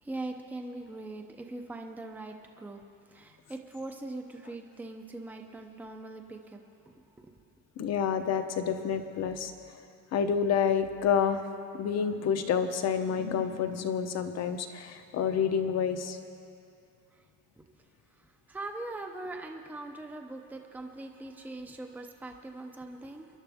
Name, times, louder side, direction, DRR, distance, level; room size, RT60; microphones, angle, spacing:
voice 1, 0.0-2.8 3.1-6.6 17.6-17.7 18.5-23.3, right 2 dB, 5° right, 3 dB, 0.6 m, -41 dB
voice 2, 7.8-9.5 10.1-11.4 11.7-16.2, left 7 dB, 50° left, 8 dB, 0.9 m, -28 dB
28.0 x 11.0 x 3.5 m, 2.5 s
cardioid pair, 180°, 33 cm